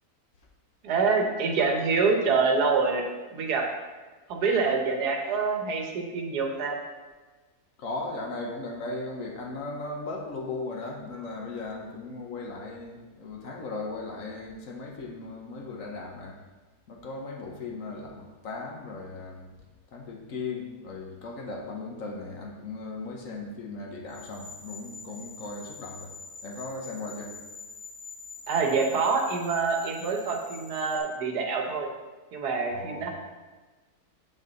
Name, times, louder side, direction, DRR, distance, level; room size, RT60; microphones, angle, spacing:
voice 1, 0.8-3.0 3.3-3.7 4.3-6.8 28.5-31.9 32.3-33.1, right 4 dB, 75° right, 2 dB, 1.5 m, -26 dB
voice 2, 7.8-16.4 16.9-19.6 19.9-26.1 26.4-27.4 32.7-33.1, left 3 dB, 55° left, 0 dB, 1.3 m, -37 dB
sound 1, 24.1-31.0, left 4 dB, 80° left, 2.2 m, -45 dB
7.5 x 5.6 x 4.0 m, 1.3 s
omnidirectional pair, 1.7 m